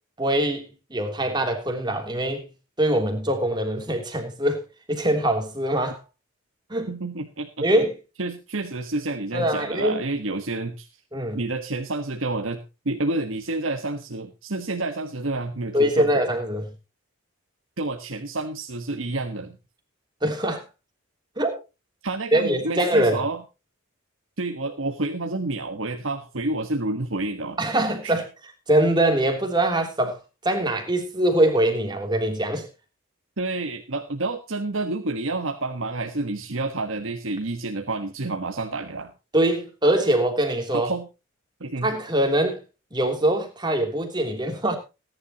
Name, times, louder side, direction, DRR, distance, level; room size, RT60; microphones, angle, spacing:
voice 1, 0.2-2.5 2.8-4.6 4.9-6.0 6.7-6.9 7.6-7.9 9.3-10.0 11.1-11.4 15.7-16.7 20.2-20.6 21.4-21.5 22.3-23.2 27.6-28.2 28.7-30.2 30.4-32.7 39.3-40.9 41.8-42.6 42.9-44.8, right 1 dB, 20° right, 3.2 m, -23 dB
voice 2, 6.9-7.7 8.2-10.9 11.3-16.1 17.8-19.6 22.0-23.4 24.4-27.6 28.0-28.2 33.4-39.1 40.7-41.1 41.6-41.9, right 2 dB, 70° right, 1.4 m, -29 dB
20.0 x 11.0 x 3.0 m
head